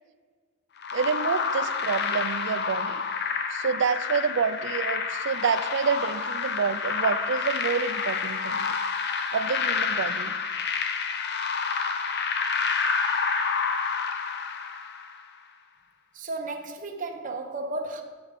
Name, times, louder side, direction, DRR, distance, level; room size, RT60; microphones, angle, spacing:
sound 1, 0.8-15.2, left 5 dB, 55° left, 0.6 m, -29 dB
voice 1, 0.9-3.0 3.5-8.6 9.3-10.3, right 6 dB, 65° right, 13 dB, 0.4 m, -28 dB
voice 2, 16.1-18.0, right 2 dB, 45° right, 3 dB, 0.9 m, -33 dB
8.2 x 6.0 x 5.0 m, 1.5 s
head